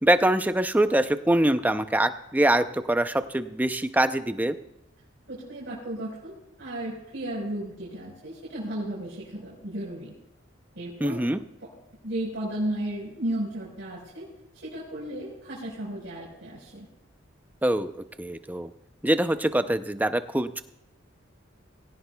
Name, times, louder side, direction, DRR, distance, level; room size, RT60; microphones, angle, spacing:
voice 1, 0.0-4.6 11.0-11.4 17.6-17.9 18.2-18.7 19.0-20.6, right 1 dB, 10° right, 10 dB, 0.5 m, -24 dB
voice 2, 5.3-10.1 10.7-11.2 11.6-11.7 12.0-14.3 14.5-16.9, right 1 dB, 65° right, -6 dB, 4.4 m, -34 dB
20.5 x 17.5 x 2.3 m, 0.87 s
head